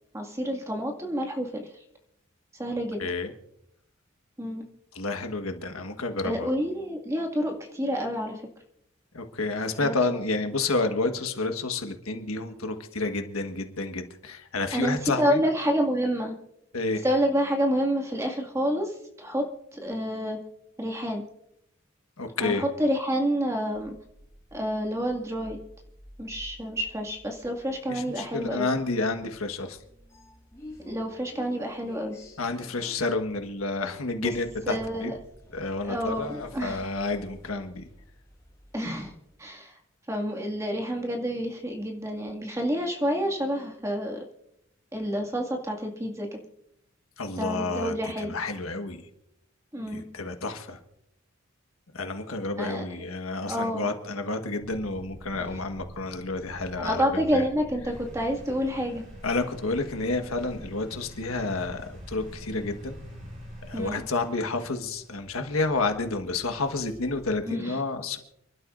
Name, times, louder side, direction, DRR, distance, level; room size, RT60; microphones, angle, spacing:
voice 1, 0.1-1.6 2.6-3.0 4.4-4.7 6.2-8.4 9.8-10.2 14.7-16.3 17.0-19.5 19.7-20.4 20.8-21.2 22.4-23.9 24.5-25.6 26.2-28.7 30.8-32.2 34.2-34.3 34.7-35.1 35.8-36.8 38.7-39.1 39.4-39.7 40.1-44.2 44.9-46.4 47.4-48.3 49.7-50.0 52.6-52.8 53.5-53.9 55.4-55.5 56.8-59.1 63.7-64.0 67.5-67.8, equal, 15° right, 2 dB, 2.1 m, -28 dB
voice 2, 3.0-3.3 4.9-6.5 9.1-15.4 16.7-17.0 22.2-22.6 27.9-29.8 32.4-35.1 35.5-37.9 47.2-48.0 48.3-49.0 49.8-50.8 51.9-57.0 57.3-57.4 59.2-63.0 63.7-68.2, left 3 dB, 85° left, 5 dB, 1.5 m, -30 dB
sound 1, 23.7-39.4, left 1 dB, 15° left, 5.2 m, -51 dB
sound 2, 54.6-64.0, equal, 90° right, 6.9 m, -45 dB
sound 3, 57.9-67.4, equal, 40° right, 5.7 m, -51 dB
29.5 x 12.0 x 2.6 m, 0.76 s
head